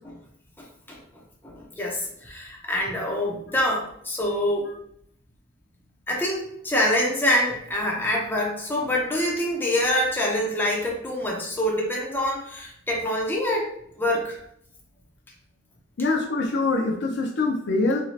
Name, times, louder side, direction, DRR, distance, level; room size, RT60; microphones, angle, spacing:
voice 1, 0.6-1.0 1.4-4.7 6.1-13.7 14.0-14.4, left 1 dB, 10° left, -2 dB, 0.5 m, -25 dB
voice 2, 16.0-18.0, left 3 dB, 60° left, 2 dB, 0.5 m, -24 dB
3.1 x 2.7 x 2.4 m, 0.71 s
head